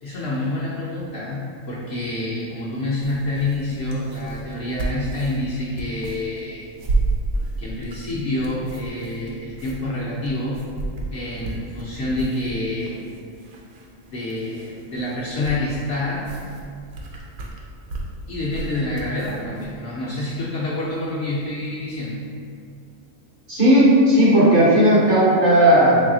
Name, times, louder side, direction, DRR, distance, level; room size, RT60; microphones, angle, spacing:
voice 1, 0.0-6.7 7.6-10.6 11.1-13.0 14.1-16.3 18.3-22.2, left 2 dB, 65° left, -7 dB, 0.7 m, -27 dB
sound 1, 3.0-19.8, right 2 dB, 85° right, 1.0 m, -32 dB
voice 2, 23.5-26.0, right 1 dB, 45° right, -8 dB, 0.9 m, -14 dB
3.2 x 2.7 x 3.6 m, 2.4 s
omnidirectional pair, 1.4 m